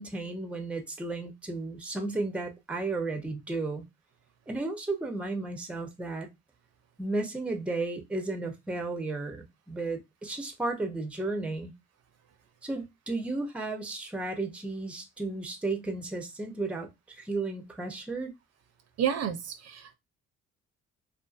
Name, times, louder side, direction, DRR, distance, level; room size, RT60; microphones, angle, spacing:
voice 1, 0.0-3.9 4.5-6.3 7.0-11.7 12.6-16.9 17.2-18.3, right 2 dB, 5° right, 0.5 m, -33 dB
voice 2, 19.0-19.9, right 8 dB, 60° right, 0.5 m, -30 dB
2.6 x 2.4 x 2.3 m
cardioid pair, 90°, 30 cm